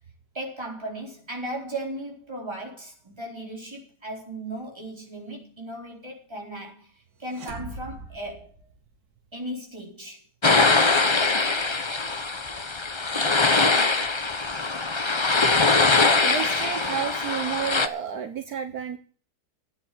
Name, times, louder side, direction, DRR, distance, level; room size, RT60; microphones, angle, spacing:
voice 1, 0.3-8.5 9.3-10.2 11.4-11.5, right 1 dB, 15° right, 4.5 m, -36 dB
sound 1, 7.2-9.2, right 3 dB, 90° right, 2.7 m, -41 dB
sound 2, 10.4-17.9, left 3 dB, 25° left, 0.7 m, -22 dB
voice 2, 15.9-19.0, right 8 dB, 70° right, 1.6 m, -32 dB
13.0 x 9.4 x 7.9 m
omnidirectional pair, 1.7 m